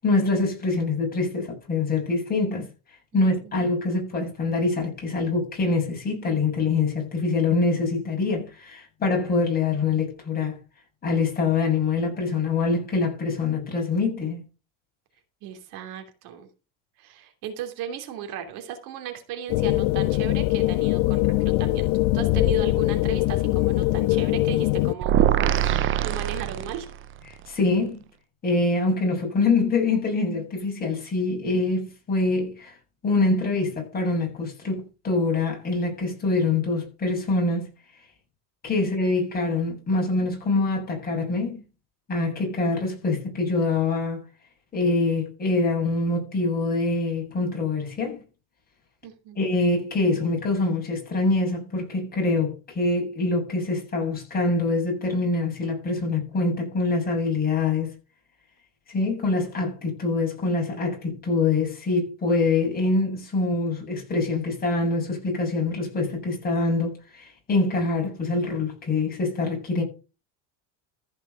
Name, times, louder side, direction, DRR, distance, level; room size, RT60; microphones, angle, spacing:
voice 1, 0.0-2.7 3.1-10.6 11.0-14.4 27.5-28.0 28.4-32.7 33.0-37.7 38.6-41.6 42.1-44.2 44.7-48.2 49.4-57.9 58.9-69.8, left 3 dB, 25° left, 7.8 m, -25 dB
voice 2, 15.4-16.5 17.0-21.3 21.6-21.9 22.1-25.3 25.5-26.9 49.0-49.4, right 9 dB, 65° right, 2.9 m, -36 dB
sound 1, 19.5-24.9, left 19 dB, 60° left, 0.6 m, -22 dB
sound 2, 25.0-27.1, right 11 dB, 35° right, 0.7 m, -23 dB
14.5 x 6.0 x 6.8 m
cardioid pair, 145°, 37 cm